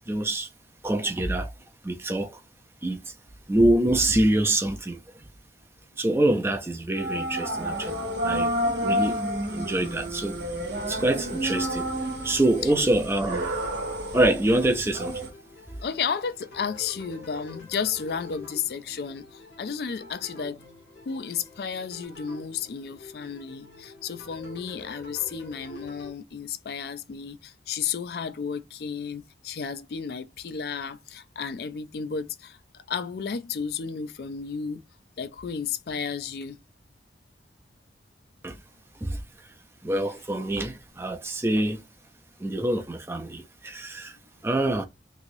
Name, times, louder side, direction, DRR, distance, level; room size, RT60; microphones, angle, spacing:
voice 1, 0.1-0.5 0.8-1.5 1.8-2.4 2.8-3.1 3.5-5.0 6.0-8.5 8.8-9.2 9.5-10.4 10.9-11.9 12.2-13.5 14.1-15.2 38.4-38.6 39.0-39.2 39.8-41.8 42.4-44.2 44.4-44.9, right 1 dB, 15° right, 0.4 m, -25 dB
sound 1, 7.0-15.3, equal, 70° right, 1.0 m, -30 dB
sound 2, 10.8-26.1, left 3 dB, 75° left, 1.2 m, -47 dB
voice 2, 15.8-20.6 21.1-34.8 35.2-36.6, left 6 dB, 60° left, 0.4 m, -33 dB
3.0 x 2.9 x 2.6 m
head